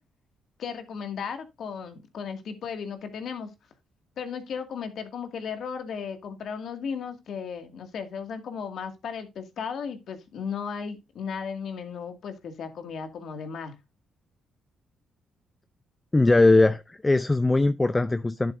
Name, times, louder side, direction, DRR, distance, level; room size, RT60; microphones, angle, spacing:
voice 1, 0.6-3.5 4.2-13.7, left 6 dB, 65° left, 2.1 m, -35 dB
voice 2, 16.1-18.5, left 2 dB, 15° left, 0.5 m, -20 dB
10.5 x 8.4 x 2.6 m
cardioid pair, 90°, 0 cm